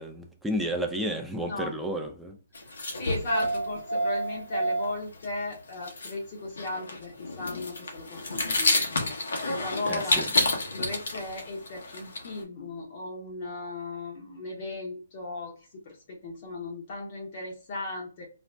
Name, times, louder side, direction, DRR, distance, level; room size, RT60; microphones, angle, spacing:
voice 1, 0.0-2.4 9.9-10.3, equal, ahead, 0.3 m, -32 dB
voice 2, 1.4-1.7 3.0-10.2 10.7-18.3, left 2 dB, 40° left, 0.8 m, -36 dB
sound 1, 2.5-4.9 5.2-5.3 5.5-5.6 5.8-6.1 6.4-12.4, left 1 dB, 75° left, 0.9 m, -29 dB
2.5 x 2.1 x 3.2 m
hypercardioid pair, 155°, 0 cm